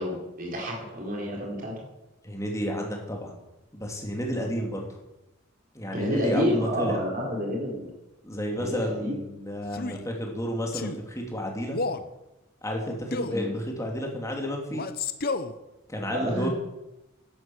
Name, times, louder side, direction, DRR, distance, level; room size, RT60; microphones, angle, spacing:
voice 1, 0.0-1.7 5.9-7.9 8.6-9.1 13.3-13.5 16.0-16.5, equal, 40° right, -1 dB, 3.8 m, -29 dB
voice 2, 2.2-3.3 3.7-4.9 5.7-7.0 8.2-11.8 12.6-14.9 15.9-16.5, equal, 15° left, 0 dB, 3.0 m, -31 dB
Male speech man speaking, 9.7-10.0 10.7-11.0 11.7-12.1 13.1-13.4 14.7-15.5, left 3 dB, 45° left, 0.9 m, -31 dB
12.0 x 10.5 x 8.1 m, 0.94 s
head